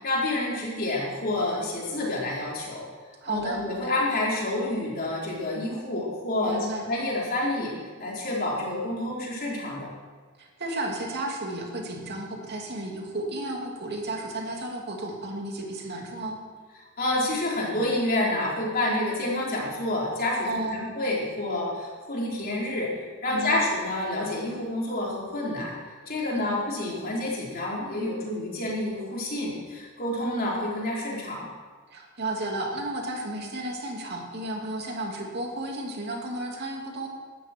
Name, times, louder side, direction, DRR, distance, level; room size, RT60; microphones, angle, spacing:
voice 1, 0.0-2.9 3.2-6.6 6.9-7.7 8.0-9.9 17.0-25.7 26.1-31.4, left 1 dB, 45° left, -4 dB, 4.4 m, -28 dB
voice 2, 3.2-3.6 6.5-6.8 10.4-16.4 20.5-20.9 23.3-23.6 26.3-26.6 31.9-37.1, right 2 dB, 50° right, 0 dB, 2.8 m, -33 dB
17.0 x 13.0 x 4.6 m, 1.5 s
head